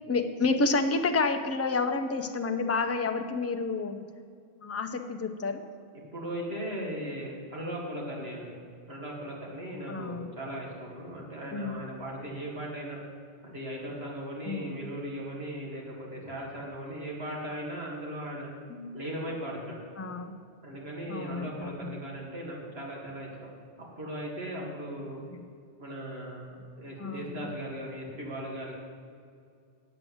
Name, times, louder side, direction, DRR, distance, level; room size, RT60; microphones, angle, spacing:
voice 1, 0.0-4.0 4.6-5.7 9.9-10.3 11.5-11.9 14.4-14.9 18.7-19.0 20.0-20.4 21.1-22.0 25.4-25.5 27.0-27.4, left 3 dB, 20° left, 6 dB, 0.5 m, -30 dB
voice 2, 6.1-8.5 8.9-13.0 13.4-18.5 18.9-19.8 20.6-23.5 23.8-25.2 25.8-28.7, right 1 dB, 70° right, -2 dB, 2.4 m, -38 dB
8.9 x 7.6 x 7.8 m, 2.2 s
omnidirectional pair, 1.1 m